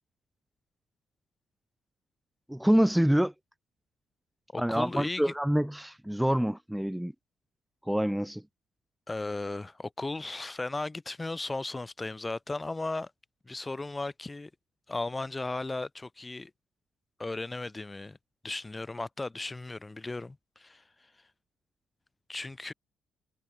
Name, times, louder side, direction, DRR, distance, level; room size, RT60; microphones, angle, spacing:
voice 1, 2.5-3.3 4.6-7.1 7.9-8.4, equal, 5° right, 1.8 m, -26 dB
voice 2, 4.5-5.3 9.1-13.1 13.5-14.5 14.9-16.5 17.2-18.2 18.4-20.8 22.3-22.7, left 2 dB, 20° left, 6.6 m, -36 dB
cardioid pair, 90°, 0 cm